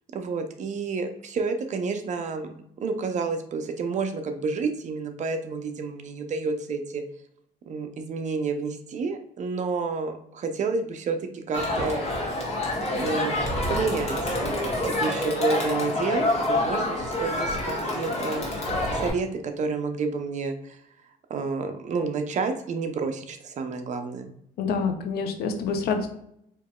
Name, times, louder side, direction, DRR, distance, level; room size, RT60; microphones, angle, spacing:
voice 1, 0.1-2.5 2.8-7.0 7.7-12.5 13.0-14.4 14.8-18.5 18.9-20.8 21.3-24.3, right 4 dB, 45° right, 6 dB, 0.6 m, -30 dB
Crowd, 11.5-19.1, left 1 dB, 40° left, 1.4 m, -27 dB
voice 2, 24.6-26.1, left 5 dB, 70° left, 6 dB, 0.7 m, -27 dB
4.6 x 3.0 x 2.3 m, 0.74 s
cardioid pair, 110°, 17 cm